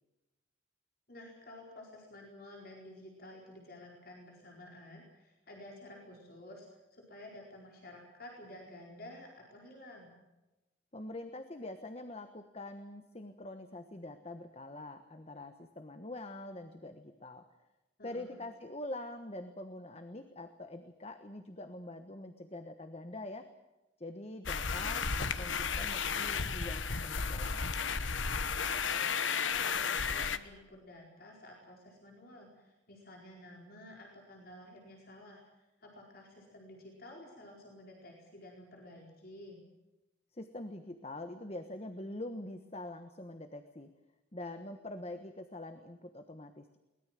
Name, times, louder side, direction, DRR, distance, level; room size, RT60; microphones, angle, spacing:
voice 1, 1.1-10.1 18.0-18.4 28.9-39.6, left 1 dB, 50° left, 0 dB, 4.7 m, -52 dB
voice 2, 10.9-17.5 18.0-23.5 24.0-27.6 40.3-43.9 44.3-46.8, left 1 dB, 30° left, 8 dB, 1.2 m, -44 dB
sound 1, 24.5-30.4, left 5 dB, 90° left, 1.2 m, -33 dB
23.0 x 20.0 x 7.6 m, 1.0 s
head